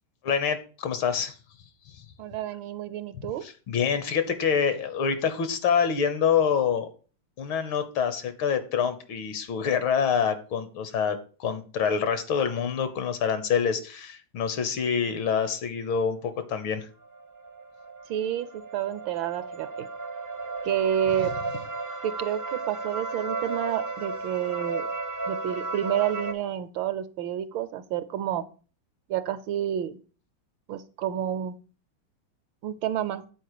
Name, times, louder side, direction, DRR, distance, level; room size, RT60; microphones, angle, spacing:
voice 1, 0.2-1.4 1.9-2.1 3.1-6.9 7.4-16.9, left 7 dB, 70° left, 11 dB, 1.8 m, -26 dB
voice 2, 2.2-3.4 18.1-19.9 20.6-21.3 22.0-24.9 25.3-28.4 29.1-30.0 30.7-31.6 32.6-33.2, right 10 dB, 75° right, 13 dB, 1.3 m, -29 dB
sound 1, 17.0-26.3, right 3 dB, 25° right, 0.4 m, -34 dB
7.7 x 4.5 x 6.5 m, 0.38 s
omnidirectional pair, 2.3 m